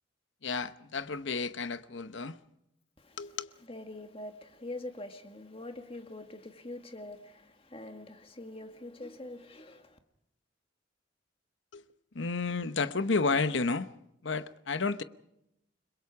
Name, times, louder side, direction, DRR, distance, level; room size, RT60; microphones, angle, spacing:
voice 1, 0.4-2.4 3.2-3.5 11.7-11.8 12.1-13.9 14.2-15.0, left 4 dB, 70° left, 0.9 m, -31 dB
voice 2, 3.7-10.0, left 2 dB, 30° left, 1.8 m, -44 dB
30.0 x 21.5 x 4.8 m
head